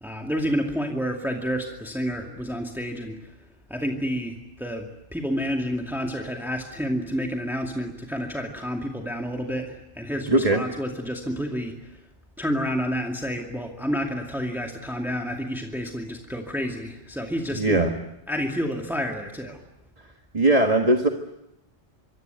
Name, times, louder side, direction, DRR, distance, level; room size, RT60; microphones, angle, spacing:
voice 1, 0.0-3.4 3.7-12.0 12.4-17.9 18.3-19.6, equal, ahead, 1 dB, 2.3 m, -29 dB
voice 2, 10.3-10.6 17.6-17.9 20.3-21.1, right 2 dB, 35° right, 4 dB, 1.6 m, -19 dB
26.5 x 23.5 x 9.2 m, 0.87 s
omnidirectional pair, 1.2 m